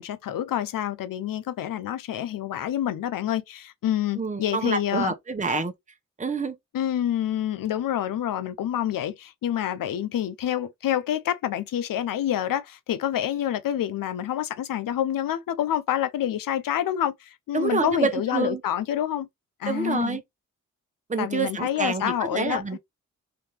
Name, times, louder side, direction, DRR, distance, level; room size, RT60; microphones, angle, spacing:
voice 1, 0.0-5.1 5.5-5.6 6.7-19.3 19.6-20.2 21.2-22.8, left 11 dB, 80° left, 0.7 m, -27 dB
voice 2, 4.2-5.7 6.2-6.6 17.5-18.6 19.7-20.2 21.1-22.8, right 4 dB, 20° right, 0.9 m, -27 dB
3.9 x 2.6 x 3.2 m
supercardioid pair, 45°, 33 cm